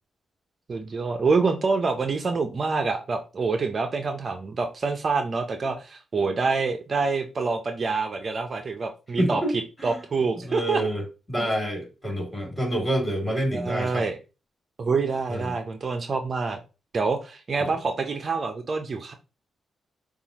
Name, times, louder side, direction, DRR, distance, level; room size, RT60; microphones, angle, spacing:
voice 1, 0.7-9.4 9.8-10.8 11.4-11.5 13.5-14.2 14.8-16.6 16.9-19.1, right 4 dB, 50° right, 6 dB, 0.6 m, -26 dB
voice 2, 9.2-9.5 9.8-10.0 10.4-14.0 15.3-15.5 17.6-17.7, equal, 15° left, 0 dB, 2.8 m, -28 dB
6.8 x 2.4 x 2.8 m, 0.30 s
supercardioid pair, 55°, 0 cm